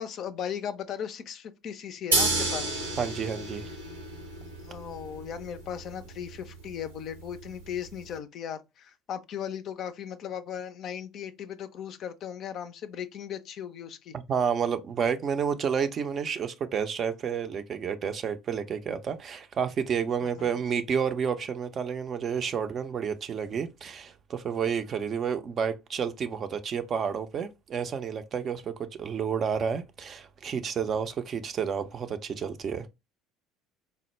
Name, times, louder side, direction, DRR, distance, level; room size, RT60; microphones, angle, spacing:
voice 1, 0.0-2.8 4.6-14.1 20.2-20.5, left 8 dB, 50° left, 0.4 m, -37 dB
sound 1, 2.1-8.1, right 2 dB, 85° right, 0.8 m, -32 dB
voice 2, 3.0-3.7 14.3-32.9, right 7 dB, 40° right, 0.4 m, -30 dB
4.3 x 2.0 x 3.1 m
figure-of-eight pair, 60°, 0 cm